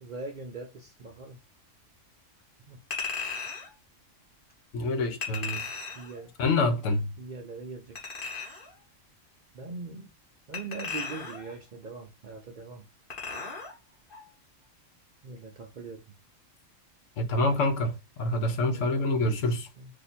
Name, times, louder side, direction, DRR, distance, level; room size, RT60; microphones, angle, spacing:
voice 1, 0.0-1.4 2.7-2.8 6.0-6.3 7.2-8.1 9.5-10.1 10.5-12.8 15.2-16.0 18.5-19.1 19.8-19.9, right 3 dB, 55° right, 0.5 m, -41 dB
Chink clink, 2.9-3.7 5.2-6.1 8.0-8.7 10.5-11.5 13.1-13.7 14.1-14.2, left 5 dB, 45° left, 1.2 m, -36 dB
voice 2, 4.7-5.6 6.4-7.1 17.2-19.7, left 2 dB, 75° left, 1.1 m, -26 dB
2.8 x 2.6 x 4.1 m
omnidirectional pair, 1.3 m